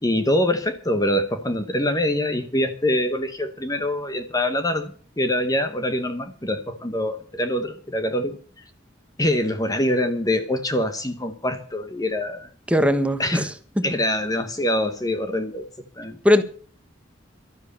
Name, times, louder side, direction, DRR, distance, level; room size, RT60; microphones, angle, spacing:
voice 1, 0.0-8.4 9.2-12.5 13.2-13.4 13.8-15.7 16.0-16.2, left 1 dB, 20° left, 1.1 m, -24 dB
voice 2, 12.7-13.5 13.8-13.9 16.2-16.4, left 1 dB, 5° right, 1.3 m, -19 dB
12.5 x 10.5 x 6.8 m
head